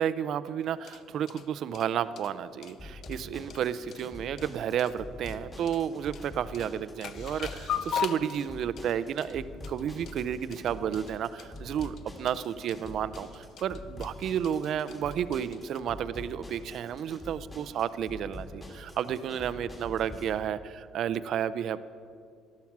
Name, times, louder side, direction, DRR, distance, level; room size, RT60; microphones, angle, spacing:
voice 1, 0.0-21.8, right 9 dB, 55° right, 15 dB, 0.5 m, -32 dB
sound 1, 0.6-15.8, left 8 dB, 55° left, 0.7 m, -41 dB
sound 2, 2.8-20.2, left 2 dB, 20° left, 2.8 m, -45 dB
13.0 x 11.5 x 6.1 m, 2.3 s
cardioid pair, 125°, 0 cm